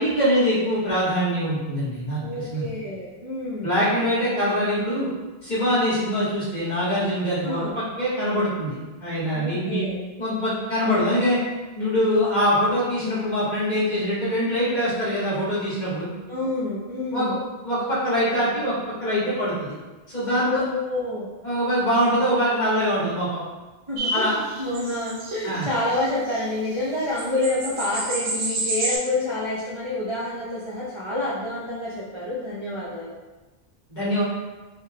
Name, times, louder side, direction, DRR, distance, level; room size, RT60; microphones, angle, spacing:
voice 1, 0.0-2.6 3.6-5.1 5.4-9.9 10.2-11.4 11.8-16.1 17.1-17.4 17.6-18.7 19.0-19.7 20.1-20.6 21.4-23.4 24.1-24.3 25.4-25.7 33.9-34.2, equal, 45° left, -10 dB, 1.8 m, -23 dB
voice 2, 2.2-3.8 7.4-7.7 9.3-10.0 16.3-17.4 20.4-21.3 23.9-33.2, left 2 dB, 35° right, -8 dB, 0.5 m, -28 dB
sound 1, 24.0-26.5 26.8-26.9 27.1-29.0, right 2 dB, 80° right, 0.9 m, -30 dB
4.7 x 2.1 x 2.8 m, 1.2 s
omnidirectional pair, 1.1 m